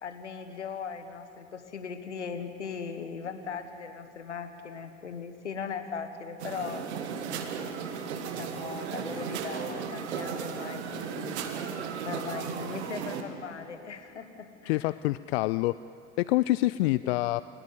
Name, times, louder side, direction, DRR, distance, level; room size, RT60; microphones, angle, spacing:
voice 1, 0.0-6.9 8.2-11.7 12.0-14.9 17.0-17.2, left 6 dB, 85° left, 9 dB, 1.5 m, -39 dB
sound 1, 6.4-13.2, right 6 dB, 70° right, 1.9 m, -35 dB
voice 2, 14.7-15.8 16.2-17.4, left 18 dB, 65° left, 16 dB, 0.5 m, -26 dB
29.5 x 14.0 x 9.4 m, 2.7 s
figure-of-eight pair, 60°, 34 cm